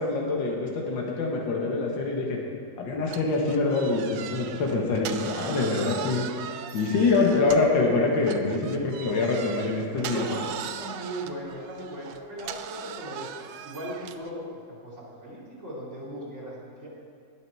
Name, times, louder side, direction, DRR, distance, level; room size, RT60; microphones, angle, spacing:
voice 1, 0.0-2.4 2.8-6.2 6.7-10.3, left 3 dB, 75° left, 0 dB, 2.1 m, -25 dB
sound 1, 3.1-7.8 8.2-14.3, right 9 dB, 75° right, 1.2 m, -39 dB
voice 2, 9.9-13.3 13.6-16.9, right 1 dB, 35° right, -7 dB, 3.2 m, -38 dB
19.5 x 6.9 x 4.6 m, 2.3 s
omnidirectional pair, 2.1 m